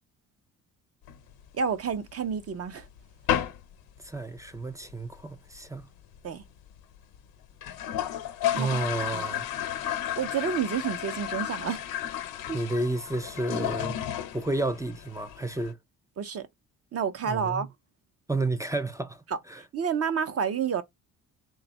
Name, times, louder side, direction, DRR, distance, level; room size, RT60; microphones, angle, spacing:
sound 1, 1.0-2.1 2.5-2.6 2.8-3.0 3.3-3.7 4.0-4.1 4.4-4.5 4.7-5.2 5.5-5.6 5.8-5.9 6.1-6.2 6.8-6.9 7.1-7.2 7.5-15.7, left 11 dB, 85° left, 0.9 m, -32 dB
voice 1, 1.5-2.9 6.2-6.4 8.5-8.7 9.1-9.2 10.2-11.8 12.5-12.6 16.2-16.5 16.9-17.7 19.3-19.4 19.7-20.8, right 7 dB, 40° right, 0.7 m, -29 dB
voice 2, 4.0-5.9 8.6-9.5 12.5-14.0 14.3-15.8 17.3-17.7 18.3-19.6, right 2 dB, 10° right, 0.4 m, -31 dB
3.4 x 2.4 x 4.0 m
cardioid pair, 110°, 36 cm